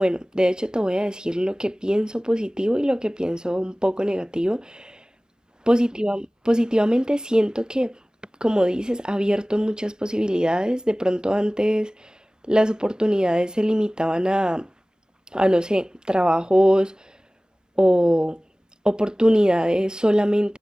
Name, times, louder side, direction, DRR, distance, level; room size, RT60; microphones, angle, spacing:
voice 1, 0.0-4.9 5.7-7.9 8.4-11.9 12.5-14.7 15.3-16.9 17.8-18.4 18.8-20.6, equal, 5° right, 3.2 m, -21 dB
head